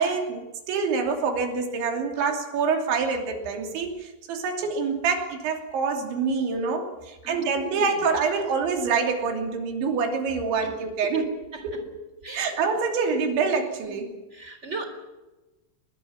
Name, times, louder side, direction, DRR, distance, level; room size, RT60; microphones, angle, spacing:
voice 1, 0.0-11.4 11.6-12.0 12.3-14.1, right 5 dB, 75° right, 4 dB, 5.3 m, -26 dB
voice 2, 7.2-7.9 11.1-11.2 11.5-11.6 12.2-12.6 13.8-14.0 14.3-14.8, right 4 dB, 15° right, 7 dB, 3.5 m, -36 dB
23.0 x 20.5 x 7.5 m, 1.1 s
omnidirectional pair, 5.4 m